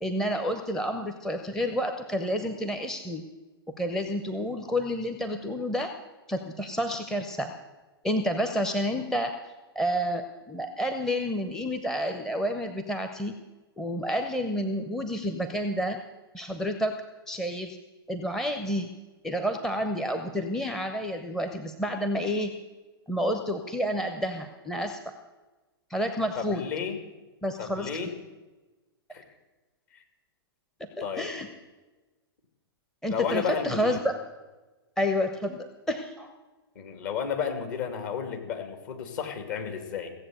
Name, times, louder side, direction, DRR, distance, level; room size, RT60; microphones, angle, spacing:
voice 1, 0.0-3.2 3.8-5.9 6.3-7.5 8.0-9.4 9.7-13.4 13.8-16.0 16.3-16.9 17.3-17.8 18.1-18.9 19.2-22.5 23.1-25.0 25.9-26.6 27.4-27.9 30.8-31.5 33.0-34.2 35.0-36.3, equal, 5° left, 5 dB, 0.9 m, -29 dB
voice 2, 26.4-27.0 27.6-28.1 29.1-29.2 29.9-30.0 31.0-31.3 33.1-34.0 36.8-40.1, left 7 dB, 45° left, 4 dB, 2.5 m, -32 dB
16.5 x 7.7 x 7.9 m, 1.2 s
figure-of-eight pair, 110°, 13 cm